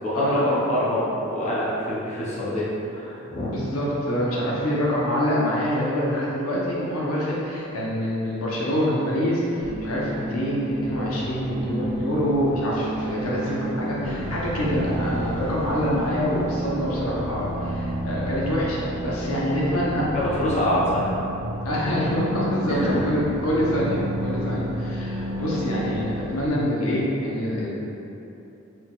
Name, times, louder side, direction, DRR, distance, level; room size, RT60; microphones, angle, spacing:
voice 1, 0.0-3.5 20.1-21.3 22.7-23.1, left 1 dB, 35° left, -8 dB, 0.7 m, -25 dB
voice 2, 3.5-20.1 20.7-20.8 21.6-27.8, equal, 80° left, -5 dB, 0.9 m, -25 dB
sound 1, 9.6-26.5, right 1 dB, 65° right, 0.5 m, -31 dB
5.1 x 3.7 x 2.4 m, 2.9 s
head